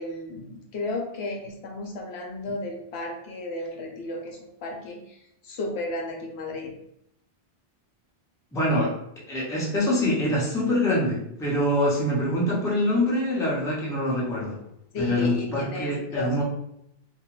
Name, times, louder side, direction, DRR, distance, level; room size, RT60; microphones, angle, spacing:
voice 1, 0.0-6.7 8.7-8.8 14.9-16.4, left 2 dB, 80° left, 1 dB, 0.8 m, -33 dB
voice 2, 8.5-8.9 9.3-14.6 15.0-16.4, left 1 dB, 5° left, -5 dB, 0.4 m, -25 dB
2.4 x 2.2 x 3.0 m, 0.77 s
omnidirectional pair, 1.1 m